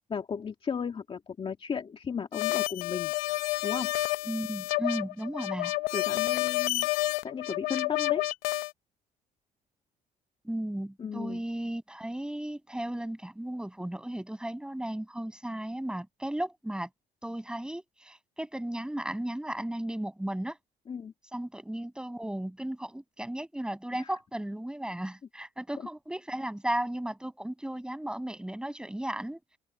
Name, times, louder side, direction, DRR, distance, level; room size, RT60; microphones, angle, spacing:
voice 1, 0.1-3.1 3.6-3.9 5.9-6.9 7.2-8.2 11.0-11.4 20.9-21.1 24.0-24.1, left 6 dB, 35° left, 2.2 m, -35 dB
sound 1, 2.3-8.7, left 20 dB, 85° left, 0.6 m, -30 dB
voice 2, 4.3-5.7 10.4-16.9 17.2-20.6 21.3-29.4, right 1 dB, 5° right, 7.2 m, -35 dB
open air
cardioid pair, 100°, 15 cm